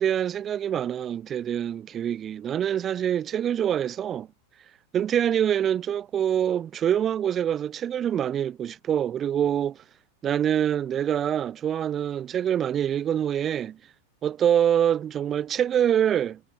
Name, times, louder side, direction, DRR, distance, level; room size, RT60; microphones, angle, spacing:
voice 1, 0.0-4.3 4.9-9.8 10.2-13.8 14.2-16.4, right 9 dB, 25° right, 0.4 m, -25 dB
figure-of-eight pair, 90°, 0 cm